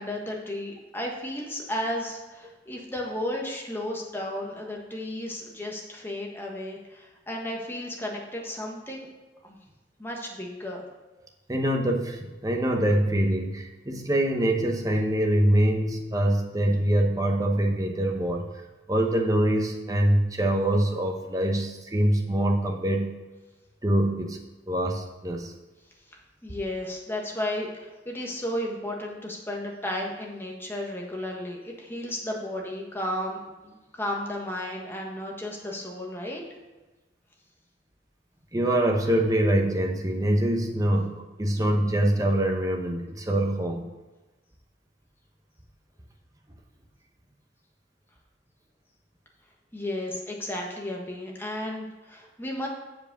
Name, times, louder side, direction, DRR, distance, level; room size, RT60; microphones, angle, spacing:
voice 1, 0.0-9.1 9.4-9.6 10.0-10.8 26.4-36.4 49.7-52.7, left 1 dB, 15° left, -1 dB, 1.4 m, -33 dB
voice 2, 11.5-18.4 18.9-23.1 23.8-24.4 24.7-25.5 38.5-43.8, right 1 dB, 20° right, 2 dB, 0.9 m, -24 dB
7.5 x 4.9 x 6.7 m, 1.1 s
head